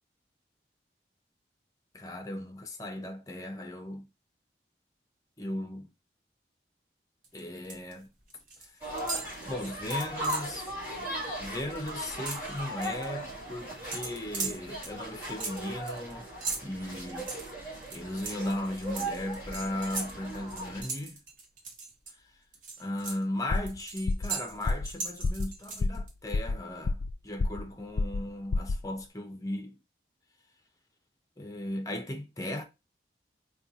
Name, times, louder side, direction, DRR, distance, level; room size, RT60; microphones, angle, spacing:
voice 1, 1.9-4.0 5.4-5.9 7.3-8.1 9.4-11.1 11.4-16.3 16.6-17.3 17.9-21.2 22.8-29.8 31.4-32.6, left 1 dB, 20° left, 0.7 m, -37 dB
sound 1, 7.2-7.9 8.2-8.7 9.0-10.6 11.0-11.1 11.4-13.1 13.9-22.1 22.5-26.1, right 4 dB, 50° right, 1.0 m, -39 dB
sound 2, 8.8-20.8, right 1 dB, 15° right, 1.8 m, -38 dB
sound 3, 23.5-23.8 24.1-24.3 24.7-24.9 25.2-25.5 25.8-26.1 26.3-27.1 27.4-27.7 28.0-28.3 28.5-28.8, left 3 dB, 85° left, 0.4 m, -28 dB
4.4 x 2.4 x 3.9 m
head